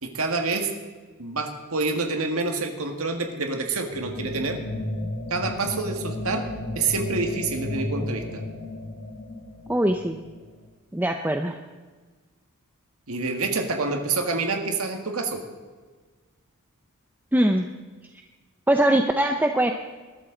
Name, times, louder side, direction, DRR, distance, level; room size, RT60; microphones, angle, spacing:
voice 1, 0.0-0.7 1.2-4.6 5.3-6.5 6.8-8.4 13.1-15.4, right 3 dB, 80° right, 4 dB, 1.8 m, -27 dB
sound 1, 3.9-10.7, left 1 dB, 60° left, 1.9 m, -34 dB
voice 2, 9.7-10.2 10.9-11.6 17.3-17.7 18.7-19.7, right 1 dB, 10° right, 5 dB, 0.6 m, -21 dB
21.0 x 12.5 x 3.9 m, 1.4 s
head